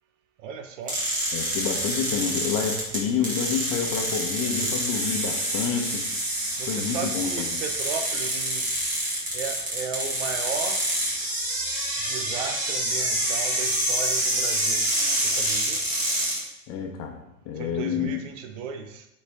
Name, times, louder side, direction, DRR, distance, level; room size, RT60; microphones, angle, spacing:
voice 1, 0.4-1.0 4.4-4.6 6.6-8.7 9.0-10.8 12.0-14.9 15.2-15.9 17.6-19.1, right 6 dB, 70° right, 7 dB, 1.1 m, -35 dB
sound 1, 0.9-16.4, right 1 dB, 20° right, 2.2 m, -27 dB
voice 2, 1.3-6.1 6.7-7.6 16.7-18.2, left 7 dB, 35° left, 3 dB, 1.2 m, -29 dB
7.9 x 4.5 x 3.6 m, 0.87 s
supercardioid pair, 140°, 39 cm